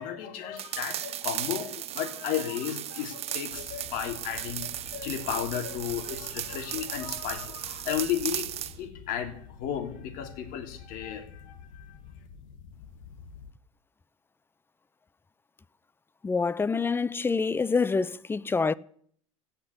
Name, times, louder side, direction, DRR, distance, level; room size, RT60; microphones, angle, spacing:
voice 1, 0.0-8.5 8.8-12.0, left 9 dB, 55° left, 3.1 m, -34 dB
sound 1, 0.6-8.8, right 12 dB, 40° right, 0.8 m, -36 dB
sound 2, 3.5-13.5, left 6 dB, 75° left, 1.5 m, -48 dB
voice 2, 16.2-18.7, left 4 dB, 15° left, 0.5 m, -26 dB
16.5 x 5.9 x 9.9 m
hypercardioid pair, 95°, 17 cm